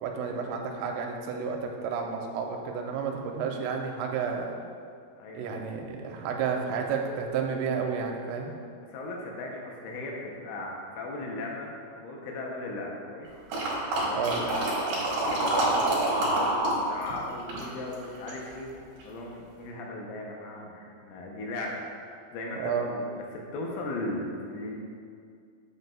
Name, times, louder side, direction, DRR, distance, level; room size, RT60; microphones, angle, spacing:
voice 1, 0.0-4.5 5.3-8.5 14.2-14.4 22.6-22.9, right 6 dB, 90° right, 2 dB, 3.2 m, -31 dB
voice 2, 5.2-5.6 8.9-13.4 14.0-18.7 19.0-21.8 22.3-24.8, left 2 dB, 80° left, -1 dB, 3.2 m, -37 dB
sound 1, 13.5-16.8 17.0-18.5 19.0-19.1, right 2 dB, 60° right, 2.9 m, -27 dB
8.8 x 8.0 x 2.3 m, 2.3 s
omnidirectional pair, 5.7 m